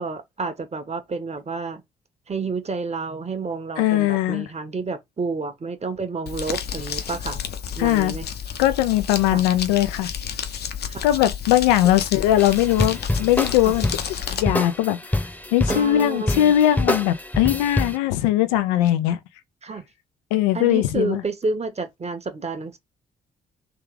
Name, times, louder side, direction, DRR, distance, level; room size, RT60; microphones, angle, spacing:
voice 1, 0.0-1.8 2.3-7.4 7.8-8.3 9.3-9.4 10.8-11.1 13.6-13.8 15.7-16.5 19.6-19.8 20.5-22.8, right 4 dB, 35° right, 1.4 m, -30 dB
voice 2, 3.8-4.5 7.8-8.1 8.6-10.1 11.0-13.9 14.3-15.0 15.5-19.2 20.3-21.2, left 13 dB, 80° left, 0.6 m, -20 dB
Crumpling crinkling, 6.3-14.4, left 8 dB, 60° left, 0.9 m, -31 dB
sound 1, 12.4-18.0, left 1 dB, 10° left, 1.0 m, -26 dB
3.6 x 3.3 x 3.3 m
hypercardioid pair, 45°, 19 cm